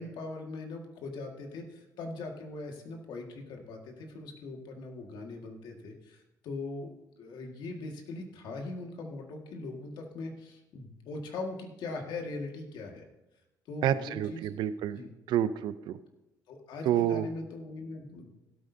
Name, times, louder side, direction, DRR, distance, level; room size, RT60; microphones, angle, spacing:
voice 1, 0.0-13.0 13.7-14.5 14.9-15.1 16.5-18.3, left 3 dB, 75° left, 2 dB, 1.9 m, -41 dB
voice 2, 13.8-15.0 15.3-16.0 16.9-17.3, right 10 dB, 70° right, 14 dB, 0.6 m, -28 dB
16.5 x 8.7 x 2.8 m, 0.96 s
cardioid pair, 115°, 8 cm